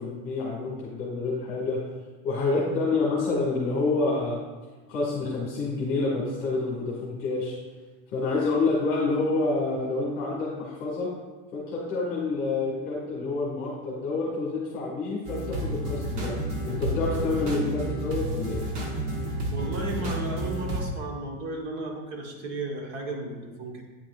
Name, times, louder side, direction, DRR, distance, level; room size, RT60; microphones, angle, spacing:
voice 1, 0.0-1.8 2.2-4.4 4.9-7.6 8.1-11.1 11.5-16.3 16.6-18.7, left 3 dB, 30° left, -5 dB, 1.7 m, -28 dB
sound 1, 15.2-20.9, right 1 dB, 55° right, 1.3 m, -30 dB
voice 2, 19.5-23.8, right 2 dB, 40° right, 1 dB, 1.3 m, -34 dB
9.2 x 5.8 x 2.4 m, 1.3 s
supercardioid pair, 160°, 39 cm